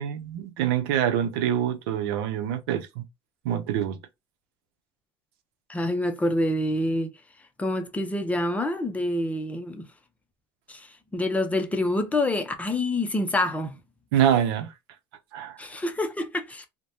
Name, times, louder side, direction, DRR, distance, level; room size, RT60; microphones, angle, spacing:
voice 1, 0.0-3.0 3.4-4.0 14.1-14.7 15.3-15.6, right 10 dB, 85° right, 0.7 m, -25 dB
voice 2, 5.7-7.1 7.6-9.9 10.7-10.9 11.1-13.7 15.6-16.7, left 1 dB, 10° left, 0.5 m, -27 dB
3.2 x 2.2 x 2.6 m
supercardioid pair, 120°, 12 cm